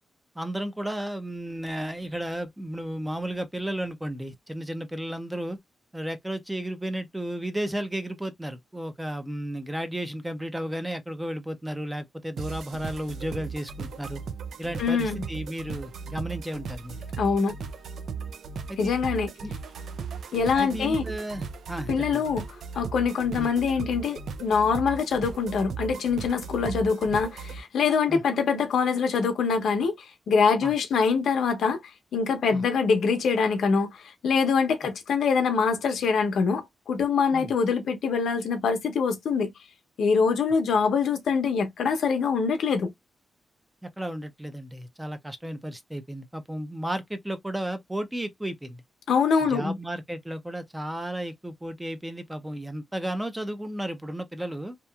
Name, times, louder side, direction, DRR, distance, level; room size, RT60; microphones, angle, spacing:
voice 1, 0.4-5.6 5.9-14.2 14.6-17.1 18.7-19.0 19.4-19.5 20.5-22.2 23.3-23.5 28.1-28.2 30.6-30.7 32.5-32.6 37.3-37.5 43.8-48.8 49.5-54.8, right 1 dB, 10° right, 0.4 m, -33 dB
sound 1, 12.4-27.6, right 5 dB, 75° right, 0.3 m, -37 dB
voice 2, 14.8-15.2 17.2-17.5 18.8-19.3 20.3-21.0 21.9-22.4 22.8-29.9 30.3-31.8 32.1-39.5 40.0-42.9 49.1-49.8, left 5 dB, 85° left, 0.7 m, -24 dB
2.9 x 2.3 x 2.2 m
wide cardioid pair, 160°, 0 cm